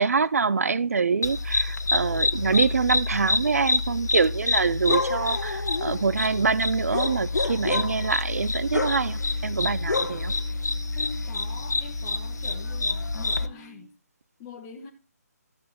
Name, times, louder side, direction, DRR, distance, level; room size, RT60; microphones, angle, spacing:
voice 1, 0.0-10.3, right 5 dB, 60° right, 0.4 m, -25 dB
sound 1, 1.2-13.5, left 3 dB, 85° left, 1.3 m, -27 dB
sound 2, 8.8-13.9, right 8 dB, 90° right, 1.6 m, -49 dB
voice 2, 10.9-13.9 14.4-14.9, left 5 dB, 15° left, 1.5 m, -43 dB
15.5 x 6.3 x 3.7 m
hypercardioid pair, 170°, 9 cm